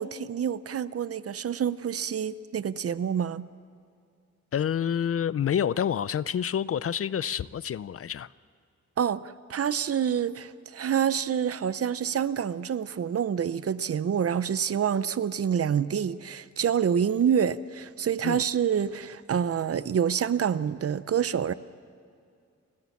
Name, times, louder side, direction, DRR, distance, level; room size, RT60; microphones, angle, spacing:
voice 1, 0.0-3.5 9.0-21.5, right 8 dB, 55° right, 16 dB, 0.6 m, -27 dB
voice 2, 4.5-8.3 18.2-18.4, left 8 dB, 50° left, 19 dB, 0.4 m, -28 dB
29.5 x 12.5 x 7.2 m, 2.4 s
wide cardioid pair, 130°, 29 cm